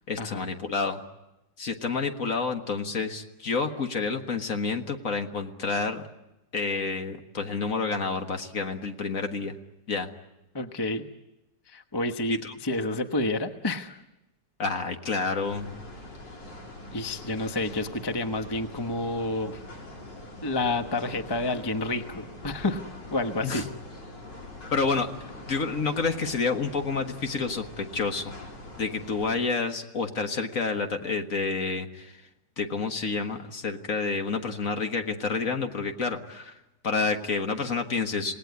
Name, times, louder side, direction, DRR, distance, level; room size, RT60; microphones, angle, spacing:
voice 1, 0.1-1.0 1.6-6.0 6.5-9.5 9.9-10.1 12.3-12.5 14.6-15.7 23.4-23.7 24.7-25.1 25.5-28.3 28.8-32.1 32.6-36.5 36.8-38.3, left 4 dB, 50° left, 6 dB, 1.8 m, -29 dB
voice 2, 10.5-11.1 11.7-14.0 16.9-19.6 20.4-22.8 23.1-23.7, left 2 dB, 15° left, 7 dB, 0.9 m, -29 dB
sound 1, 15.4-29.4, left 2 dB, 75° left, 4.5 m, -43 dB
27.5 x 18.5 x 9.5 m, 0.95 s
omnidirectional pair, 2.0 m